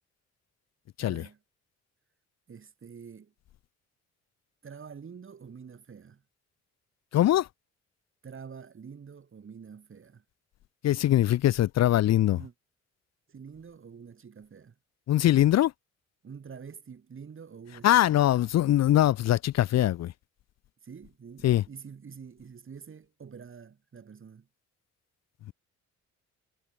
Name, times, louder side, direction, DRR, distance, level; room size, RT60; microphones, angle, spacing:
voice 1, 1.0-1.4 2.5-3.3 4.6-6.2 8.2-10.2 12.1-12.5 13.3-14.7 16.2-18.4 20.8-24.5, right 6 dB, 45° right, 6.7 m, -47 dB
voice 2, 7.1-7.5 10.8-12.4 15.1-15.7 17.8-20.1 21.4-21.6, left 13 dB, 60° left, 0.6 m, -22 dB
cardioid pair, 90°, 30 cm